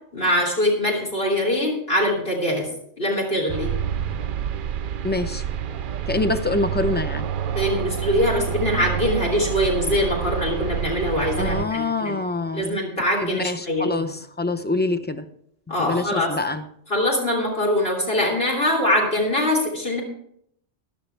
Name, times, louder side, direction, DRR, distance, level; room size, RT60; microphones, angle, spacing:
voice 1, 0.1-2.7 3.0-3.7 7.5-12.2 12.5-14.1 15.7-16.3 16.9-20.0, left 1 dB, 60° left, -2 dB, 3.4 m, -23 dB
sound 1, 3.5-11.7, right 8 dB, 60° right, 0.6 m, -28 dB
voice 2, 5.0-5.4 6.1-7.3 11.4-12.8 13.2-15.3 15.8-16.7, left 2 dB, 15° left, 9 dB, 0.5 m, -25 dB
15.5 x 11.0 x 3.3 m, 0.69 s
omnidirectional pair, 1.1 m